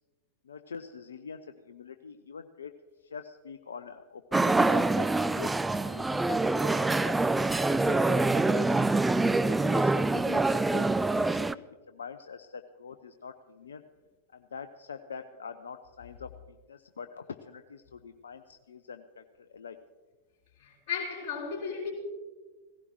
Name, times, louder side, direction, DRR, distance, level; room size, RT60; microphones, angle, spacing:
voice 1, 0.4-1.4 1.7-2.7 3.0-7.2 7.7-8.8 9.3-13.8 14.3-19.8, left 6 dB, 70° left, 0.5 m, -44 dB
sound 1, 4.3-11.5, right 2 dB, 10° right, 0.3 m, -25 dB
voice 2, 20.6-21.9, left 6 dB, 40° left, 3.5 m, -35 dB
17.5 x 15.5 x 3.1 m
figure-of-eight pair, 90°, 0 cm